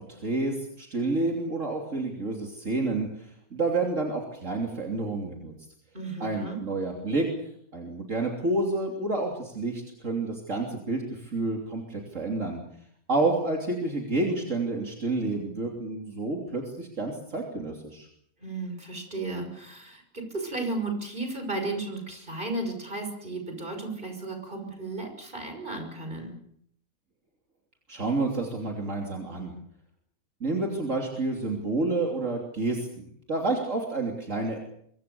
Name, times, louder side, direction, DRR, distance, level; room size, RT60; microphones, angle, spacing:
voice 1, 0.1-5.5 6.2-7.3 7.7-12.6 13.1-18.1 27.9-29.5 30.4-34.6, right 2 dB, 60° right, 1 dB, 3.4 m, -29 dB
voice 2, 5.9-6.6 18.4-26.4, right 2 dB, 35° right, 5 dB, 6.2 m, -34 dB
24.5 x 24.0 x 6.9 m, 0.69 s
omnidirectional pair, 1.5 m